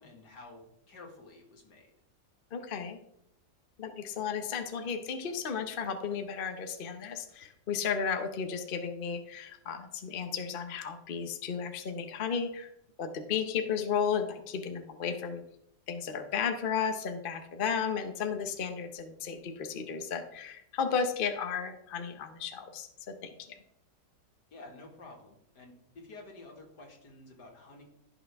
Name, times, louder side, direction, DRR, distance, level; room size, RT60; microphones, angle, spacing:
voice 1, 0.0-1.9 24.5-27.8, left 2 dB, 70° left, 1 dB, 2.5 m, -51 dB
voice 2, 2.5-3.0 3.8-12.7 13.0-15.4 15.9-22.9 23.2-23.5, left 6 dB, 45° left, 6 dB, 0.8 m, -34 dB
15.5 x 6.0 x 3.5 m, 0.77 s
omnidirectional pair, 1.9 m